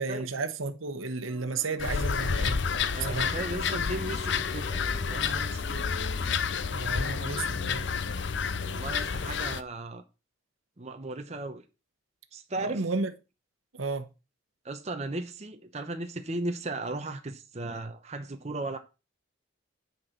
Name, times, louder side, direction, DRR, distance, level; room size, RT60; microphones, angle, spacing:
voice 1, 0.0-2.6 3.1-3.3 6.7-7.9 12.6-13.1 13.8-14.1, right 3 dB, 80° right, 1.1 m, -32 dB
eerie sound, 1.3-7.7, equal, 5° right, 3.1 m, -50 dB
Birds and a hippopotamus in a zoo, 1.8-9.6, left 5 dB, 60° left, 0.6 m, -30 dB
voice 2, 2.9-5.8 8.7-10.0 10.8-11.6 12.3-12.8 14.6-18.8, right 2 dB, 35° right, 0.9 m, -36 dB
9.6 x 4.3 x 5.8 m
head